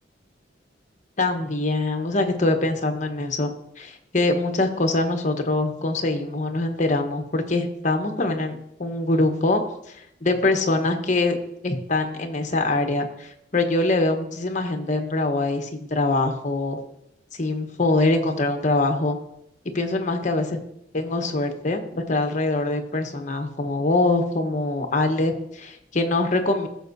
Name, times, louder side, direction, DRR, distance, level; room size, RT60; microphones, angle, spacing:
voice 1, 1.2-3.5 3.8-9.6 9.9-11.4 11.6-16.8 17.4-19.2 19.7-20.6 20.9-26.7, left 2 dB, 40° left, 5 dB, 1.1 m, -23 dB
15.5 x 6.6 x 2.7 m, 0.79 s
head